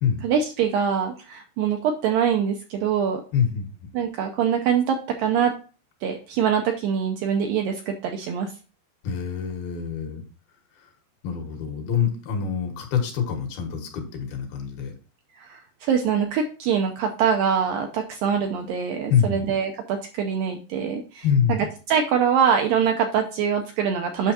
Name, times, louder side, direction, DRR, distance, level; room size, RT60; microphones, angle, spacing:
voice 1, 0.2-3.2 3.9-5.5 6.0-8.5 15.3-21.6 21.9-24.3, right 7 dB, 80° right, 4 dB, 2.1 m, -24 dB
voice 2, 3.3-3.7 9.0-10.2 10.8-10.9 11.2-14.9 19.1-19.5 21.2-21.6, left 7 dB, 70° left, 3 dB, 3.1 m, -25 dB
9.2 x 6.4 x 2.8 m, 0.36 s
omnidirectional pair, 4.8 m